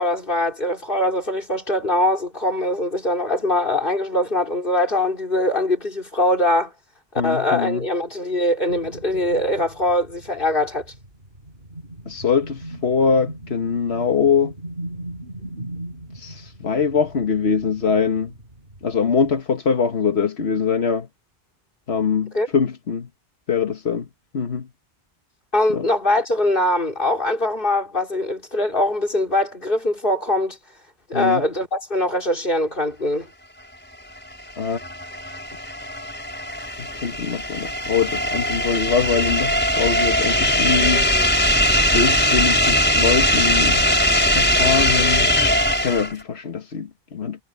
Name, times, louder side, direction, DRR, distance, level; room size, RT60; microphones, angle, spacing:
voice 1, 0.0-6.7 7.1-10.9 22.3-22.5 25.5-30.6 31.1-33.3, left 1 dB, 60° left, 3.9 m, -22 dB
voice 2, 7.2-7.8 12.1-14.5 16.1-18.3 18.8-21.1 21.9-23.1 23.5-24.1 24.3-24.7 25.7-25.8 31.1-31.4 34.6-34.8 36.8-41.1 41.9-43.8 44.3-45.3 45.8-47.4, left 6 dB, 85° left, 1.7 m, -23 dB
sound 1, 8.7-19.3, right 1 dB, 65° right, 8.5 m, -39 dB
sound 2, 34.3-46.2, equal, 10° left, 3.3 m, -20 dB
omnidirectional pair, 1.0 m